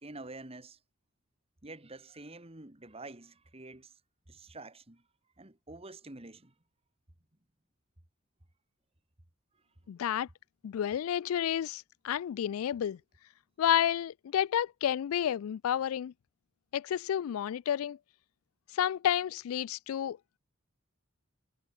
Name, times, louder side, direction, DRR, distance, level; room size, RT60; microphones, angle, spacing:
voice 1, 0.0-0.8 1.6-3.9 4.3-5.0 5.4-6.5, right 2 dB, 30° right, 2.0 m, -47 dB
voice 2, 9.9-10.3 10.6-13.0 13.6-16.1 16.7-18.0 18.7-20.2, left 10 dB, 85° left, 0.3 m, -30 dB
head